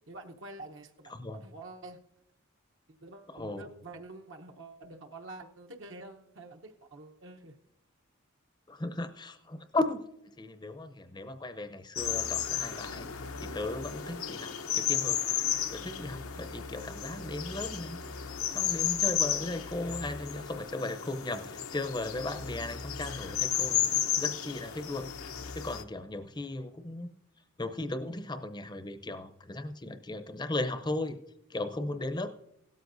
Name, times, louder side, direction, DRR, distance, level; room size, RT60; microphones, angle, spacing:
voice 1, 0.1-2.0 3.0-7.5 23.6-24.0, right 2 dB, 60° right, 3 dB, 0.9 m, -47 dB
voice 2, 3.3-3.6 8.7-10.0 10.4-13.1 13.4-15.2 15.7-18.0 18.5-23.8 24.2-25.1 25.5-27.1 27.6-31.2 31.5-32.3, left 2 dB, 20° left, 9 dB, 0.6 m, -36 dB
sound 1, 12.0-25.8, left 9 dB, 85° left, 0.9 m, -33 dB
17.0 x 13.0 x 2.6 m, 0.82 s
head